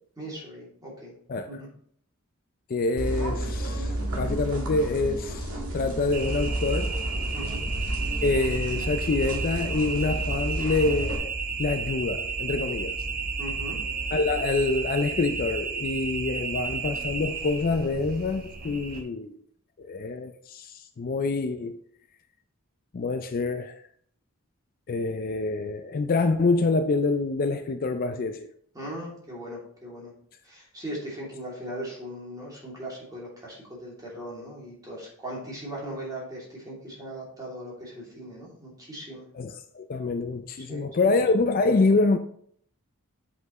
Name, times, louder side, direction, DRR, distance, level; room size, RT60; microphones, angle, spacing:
voice 1, 0.2-1.1 1.5-1.7 7.3-7.6 13.4-13.8 28.7-30.1 30.4-39.2 40.6-41.2, right 1 dB, 15° right, 2.6 m, -39 dB
voice 2, 2.7-5.5 5.7-7.0 8.2-11.3 11.6-13.0 14.1-19.4 19.8-21.8 22.9-23.7 24.9-28.5 39.3-42.2, left 3 dB, 40° left, 0.4 m, -26 dB
sound 1, 3.0-11.2, right 1 dB, 85° right, 1.8 m, -32 dB
sound 2, 6.1-19.0, right 4 dB, 45° right, 1.2 m, -32 dB
7.8 x 5.7 x 3.0 m
head